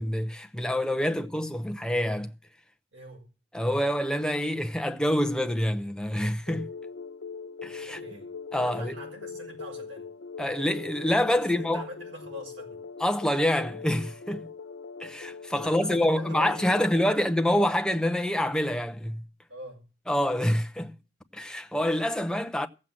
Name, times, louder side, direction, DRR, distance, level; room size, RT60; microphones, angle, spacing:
voice 1, 0.0-2.3 3.5-6.7 7.6-8.0 8.5-8.9 10.4-11.8 13.0-14.5 15.0-19.2 20.1-20.9 21.3-22.7, left 1 dB, 5° left, 0.7 m, -26 dB
voice 2, 2.9-3.3 7.8-10.1 11.2-12.8 15.6-17.4 19.5-19.9, left 1 dB, 75° right, 6.3 m, -44 dB
sound 1, 6.5-16.8, left 5 dB, 75° left, 0.7 m, -41 dB
15.5 x 7.6 x 7.5 m
head